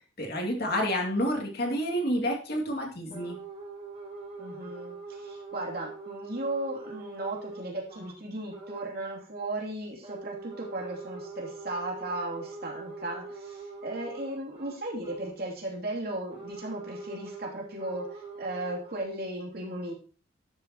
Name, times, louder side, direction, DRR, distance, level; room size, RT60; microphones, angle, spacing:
voice 1, 0.2-3.4, equal, 50° left, 0 dB, 2.5 m, -29 dB
sound 1, 3.1-8.2 8.5-8.9 10.0-15.4 16.3-19.0, right 3 dB, 30° right, 2.8 m, -43 dB
voice 2, 4.4-19.9, right 1 dB, 50° right, -1 dB, 2.9 m, -36 dB
12.0 x 7.0 x 3.0 m, 0.38 s
head